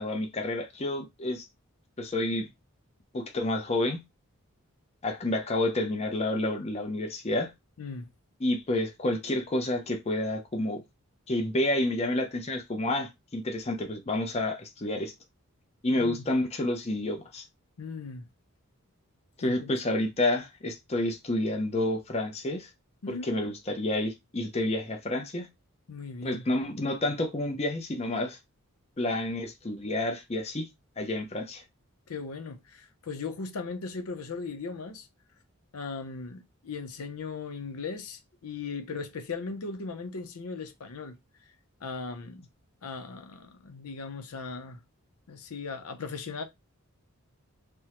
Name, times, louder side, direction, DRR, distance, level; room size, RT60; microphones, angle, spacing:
voice 1, 0.0-1.4 2.0-2.5 3.1-4.0 5.0-7.5 8.4-10.8 11.3-15.1 15.8-17.5 19.4-22.7 23.1-25.5 26.2-28.4 29.0-30.7 31.0-31.6, left 1 dB, 30° left, 0.5 m, -29 dB
voice 2, 7.8-8.1 15.9-16.2 17.8-18.3 19.4-19.7 23.0-23.4 25.9-26.4 32.1-35.1 35.7-41.2 41.8-42.5 42.8-44.8 45.3-46.4, left 4 dB, 85° left, 0.6 m, -38 dB
3.5 x 2.1 x 2.9 m
head